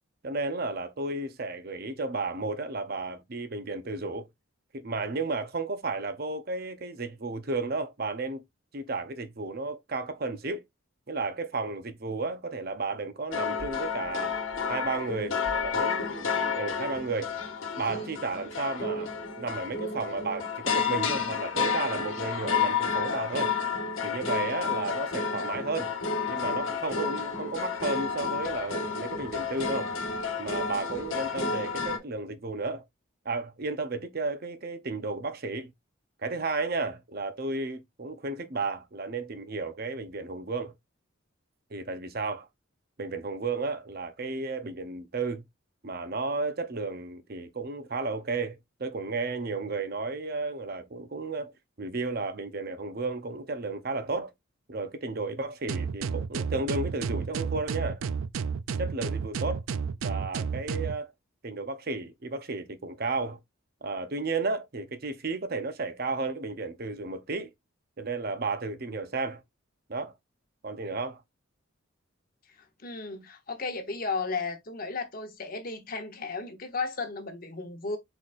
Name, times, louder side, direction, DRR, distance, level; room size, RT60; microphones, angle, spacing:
voice 1, 0.2-4.3 4.7-8.4 8.7-10.6 11.1-14.3 14.7-17.3 17.8-19.1 19.4-23.5 24.0-25.9 26.3-29.9 30.4-32.8 33.2-35.7 36.2-40.7 41.7-42.5 43.0-45.4 45.8-51.5 51.8-54.3 54.7-58.0 58.8-59.6 60.0-61.1 61.4-63.4 63.8-67.5 68.0-69.4 69.9-70.1 70.6-71.2, right 3 dB, 45° right, 0.7 m, -33 dB
sound 1, 13.3-32.0, left 5 dB, 75° left, 1.1 m, -31 dB
sound 2, 55.7-61.0, right 6 dB, 80° right, 0.4 m, -31 dB
voice 2, 72.8-78.0, left 4 dB, 45° left, 1.0 m, -34 dB
4.5 x 4.0 x 2.5 m
head